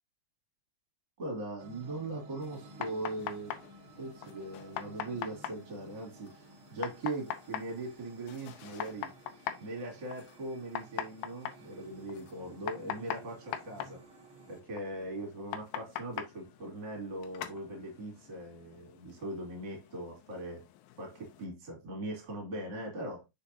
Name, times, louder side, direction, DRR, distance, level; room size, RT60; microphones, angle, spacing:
voice 1, 1.2-3.6 4.0-9.1 9.6-14.0 14.5-20.6 21.0-23.3, right 2 dB, 30° right, 2.8 m, -40 dB
sound 1, 1.6-14.6, right 3 dB, 80° right, 1.2 m, -55 dB
sound 2, 2.4-21.5, left 11 dB, 90° left, 2.6 m, -44 dB
6.4 x 6.0 x 2.8 m
omnidirectional pair, 4.2 m